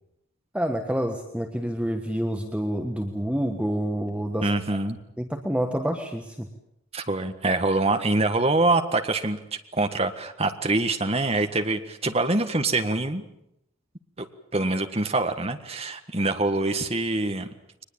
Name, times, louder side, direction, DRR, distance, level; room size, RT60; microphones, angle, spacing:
voice 1, 0.5-4.5 5.2-6.5, equal, 5° right, 4 dB, 1.4 m, -28 dB
voice 2, 4.4-5.0 6.9-9.4 9.7-13.2 14.2-14.3 14.5-17.5, right 2 dB, 30° right, 7 dB, 1.6 m, -25 dB
23.0 x 20.5 x 8.7 m, 0.81 s
head